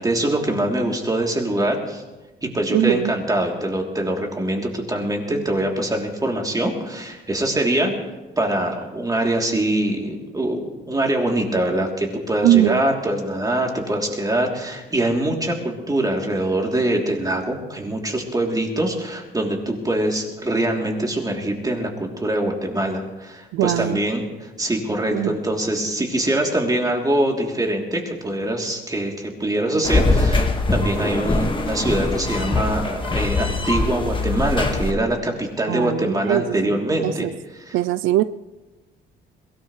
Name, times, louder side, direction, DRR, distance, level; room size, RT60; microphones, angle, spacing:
voice 1, 0.0-2.0 2.4-7.9 8.4-37.3 37.6-37.8, right 1 dB, 20° right, 0 dB, 3.2 m, -23 dB
voice 2, 2.7-3.1 12.4-12.8 23.5-24.0 25.1-25.4 35.7-37.3 37.7-38.2, right 14 dB, 90° right, 15 dB, 0.4 m, -21 dB
sound 1, 29.8-34.9, left 3 dB, 25° left, 1.7 m, -22 dB
22.0 x 17.5 x 3.2 m, 1.2 s
cardioid pair, 90°, 20 cm